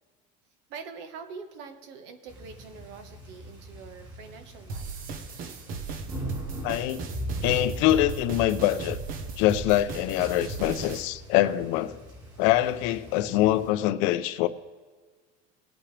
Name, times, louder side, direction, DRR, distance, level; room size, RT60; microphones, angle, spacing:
voice 1, 0.7-5.1, right 5 dB, 60° right, 6 dB, 1.5 m, -44 dB
sound 1, 2.3-13.7, right 1 dB, 20° right, 3.7 m, -40 dB
sound 2, 4.7-11.1, right 4 dB, 45° right, 1.1 m, -37 dB
voice 2, 6.6-7.0 7.4-9.0 9.4-12.0 12.4-14.5, left 14 dB, 70° left, 12 dB, 0.7 m, -24 dB
20.0 x 8.7 x 3.3 m, 1.5 s
cardioid pair, 165°, 20 cm